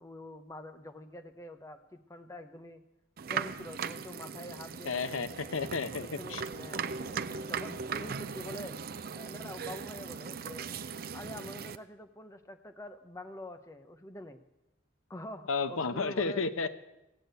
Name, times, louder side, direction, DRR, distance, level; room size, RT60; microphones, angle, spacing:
voice 1, 0.0-2.8 3.3-5.2 5.8-7.2 7.5-8.8 9.1-10.7 11.1-14.4 15.1-16.4, left 1 dB, 15° left, 7 dB, 0.7 m, -46 dB
sound 1, 3.2-11.8, right 6 dB, 45° right, 0.5 m, -38 dB
voice 2, 4.9-6.4 15.5-16.7, left 4 dB, 90° left, 12 dB, 0.8 m, -32 dB
15.5 x 8.4 x 7.9 m, 0.92 s
head